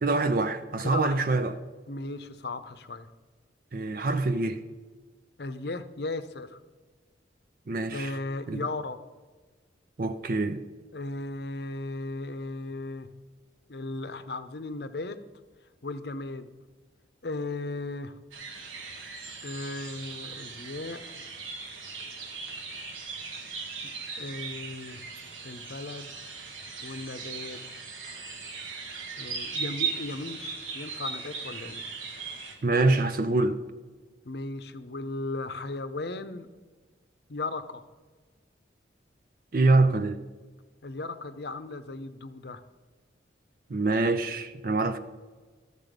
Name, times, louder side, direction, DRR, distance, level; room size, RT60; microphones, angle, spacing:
voice 1, 0.0-1.5 3.7-4.6 7.7-8.1 8.5-8.6 10.0-10.6 32.6-33.6 39.5-40.2 43.7-45.0, right 2 dB, 50° right, 0.5 m, -25 dB
voice 2, 0.8-1.3 1.9-3.1 5.4-6.6 7.9-9.0 10.9-13.1 13.7-15.2 15.8-16.5 17.2-18.2 19.4-21.0 23.8-23.9 24.2-25.0 25.4-26.1 26.8-27.6 29.2-31.9 34.2-36.5 37.3-37.8 40.8-42.6, left 2 dB, 55° left, 0.7 m, -36 dB
sound 1, 18.3-32.5, right 5 dB, 90° right, 1.8 m, -38 dB
14.0 x 6.7 x 5.2 m
head